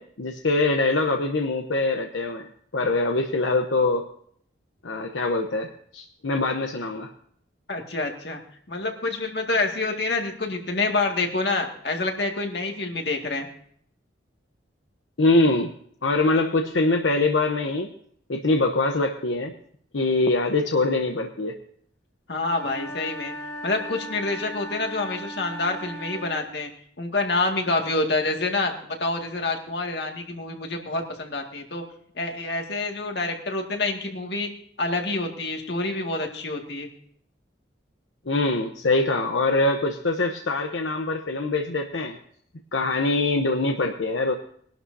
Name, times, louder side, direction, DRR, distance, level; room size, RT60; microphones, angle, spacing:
voice 1, 0.0-4.1 4.8-7.1 15.2-15.7 16.0-17.9 18.3-19.5 19.9-21.6 38.3-42.2 42.7-44.3, left 2 dB, 85° left, 3 dB, 0.9 m, -23 dB
voice 2, 7.7-8.4 8.7-13.5 22.3-23.3 23.6-26.7 27.0-31.8 32.2-34.5 34.8-36.9, left 3 dB, 65° left, 2 dB, 2.1 m, -27 dB
sound 1, 22.5-26.5, equal, 15° left, 1.7 m, -37 dB
21.5 x 12.0 x 2.7 m, 0.62 s
head